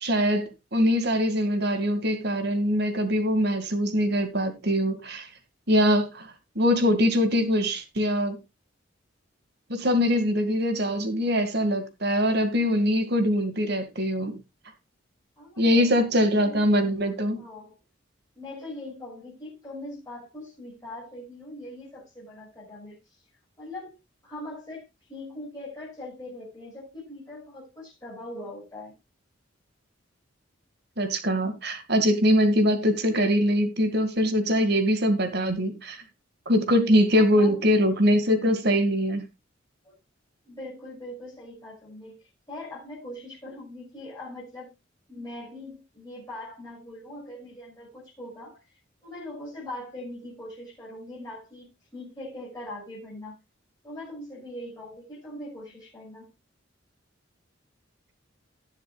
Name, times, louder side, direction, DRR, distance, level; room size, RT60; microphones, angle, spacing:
voice 1, 0.0-5.3 5.7-8.4 9.7-14.4 15.6-17.4 31.0-36.0 36.5-39.2, equal, 55° right, 2.1 m, -23 dB
voice 2, 15.4-17.7 18.3-23.2 23.6-24.0 24.2-24.8 25.1-28.9 37.1-37.6 39.8-39.9 40.4-44.7 45.1-48.6 49.0-53.4 53.8-56.3, left 1 dB, 15° left, 6.2 m, -41 dB
19.0 x 7.3 x 2.4 m
head